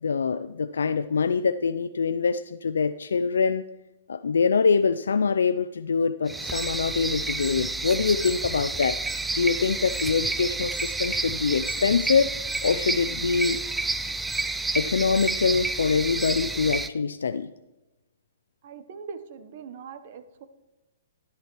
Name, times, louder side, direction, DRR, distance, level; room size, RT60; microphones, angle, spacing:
voice 1, 0.0-3.6 4.1-9.0 9.3-12.3 12.6-13.6 14.7-17.5, left 5 dB, 85° left, 11 dB, 0.4 m, -24 dB
sound 1, 6.3-16.9, right 3 dB, 5° right, 0.4 m, -30 dB
voice 2, 18.6-20.5, right 6 dB, 55° right, 10 dB, 1.0 m, -41 dB
11.0 x 10.0 x 3.1 m, 1.0 s
hypercardioid pair, 135°, 0 cm